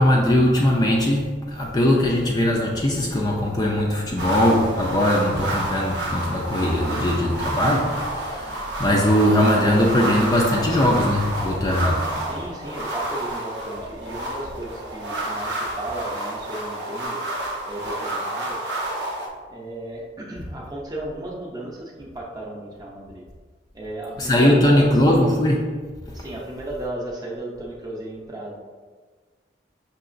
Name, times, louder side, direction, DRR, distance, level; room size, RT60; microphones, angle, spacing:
voice 1, 0.0-12.3 24.2-25.8, left 1 dB, 20° left, 0.4 m, -20 dB
sound 1, 4.2-19.3, right 1 dB, 70° right, 0.7 m, -29 dB
voice 2, 12.1-17.2 17.6-18.6 19.5-23.2 23.7-25.0 26.1-28.6, right 1 dB, 20° right, 0.6 m, -34 dB
5.8 x 2.9 x 2.5 m
head